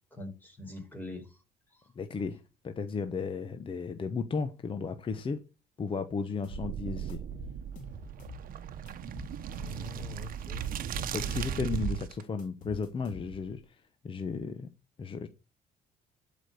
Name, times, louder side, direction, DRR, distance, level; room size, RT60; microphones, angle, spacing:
voice 1, 0.1-1.4 9.5-10.6 11.0-11.3, left 1 dB, 10° left, 4.8 m, -43 dB
voice 2, 2.0-5.4 5.8-7.2 11.1-13.6 14.0-14.7 15.0-15.3, left 5 dB, 30° left, 1.0 m, -34 dB
sound 1, 6.4-6.7 7.1-8.5 8.9-10.2 10.6-12.0 12.4-13.6, left 3 dB, 50° left, 3.2 m, -47 dB
sound 2, 6.5-12.2, right 9 dB, 55° right, 1.0 m, -37 dB
12.0 x 5.2 x 6.6 m
cardioid pair, 110°, 17 cm